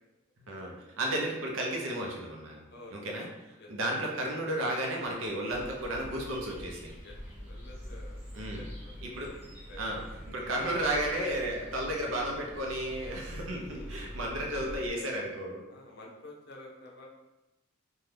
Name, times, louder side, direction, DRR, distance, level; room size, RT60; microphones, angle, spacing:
voice 1, 0.4-2.6 2.9-3.3 3.7-6.9 8.3-8.7 9.0-9.3 9.8-10.0 10.3-15.6, right 1 dB, 70° right, 0 dB, 0.6 m, -33 dB
voice 2, 2.7-3.0 3.6-3.7 7.0-7.2 7.4-9.3 9.7-10.1 13.6-13.9 14.3-14.8 15.7-17.1, left 2 dB, 50° left, -1 dB, 0.5 m, -50 dB
sound 1, 5.5-14.9, equal, 10° right, 0.7 m, -45 dB
2.7 x 2.2 x 3.3 m, 1.0 s
head